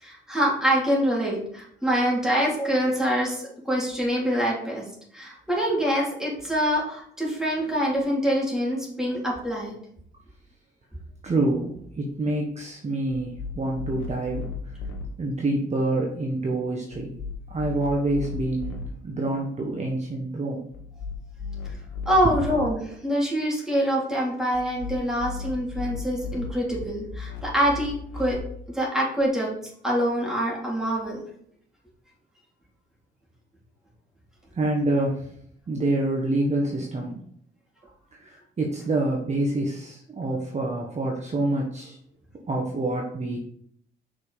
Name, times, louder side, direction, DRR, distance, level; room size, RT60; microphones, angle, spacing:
voice 1, 0.0-4.8 5.1-9.8 22.1-28.4 28.7-29.5 29.8-31.2, equal, 5° right, -5 dB, 3.7 m, -25 dB
voice 2, 11.2-14.7 15.2-17.1 17.5-20.7 22.2-22.3 34.5-35.3 35.7-37.2 38.1-42.0 42.5-43.4, right 2 dB, 35° right, -1 dB, 1.5 m, -27 dB
sound 1, 13.1-15.0 16.9-18.8 20.7-22.6 24.5-28.3, left 4 dB, 80° left, 1.8 m, -36 dB
6.0 x 5.7 x 5.1 m, 0.66 s
cardioid pair, 90°, 20 cm